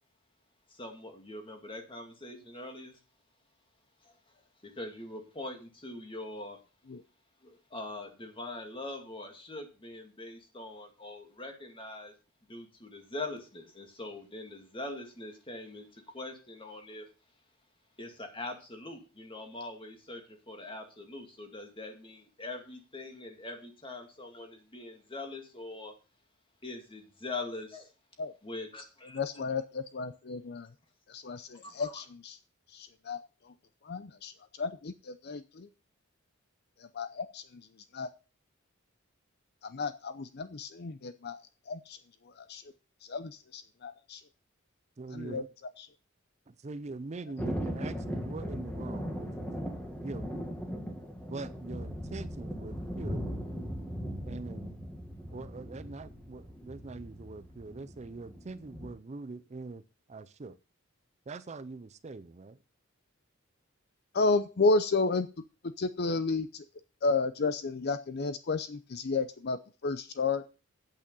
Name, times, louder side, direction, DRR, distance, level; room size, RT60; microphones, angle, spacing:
voice 1, 0.7-3.0 4.0-4.1 4.6-6.6 7.4-12.1 12.5-17.0 18.0-25.9 26.6-27.9 28.4-29.2 31.6-32.0, left 2 dB, 25° left, 2.2 m, -42 dB
voice 2, 29.1-30.7 31.1-32.4 32.7-33.2 33.4-33.5 33.8-35.7 36.8-37.7 37.9-38.1 39.6-41.4 41.7-42.0 42.3-42.6 43.1-44.2 45.1-45.4 45.8-45.9 64.1-65.3 65.8-66.6 67.0-70.4, left 3 dB, 50° left, 0.6 m, -32 dB
voice 3, 45.0-45.5 46.5-49.5 50.0-50.3 51.3-53.3 54.2-54.8 55.3-59.8 60.1-60.6 61.3-62.6, right 3 dB, 35° right, 0.5 m, -43 dB
Thunder, 47.4-58.9, equal, 5° left, 1.9 m, -38 dB
8.8 x 8.5 x 5.4 m
head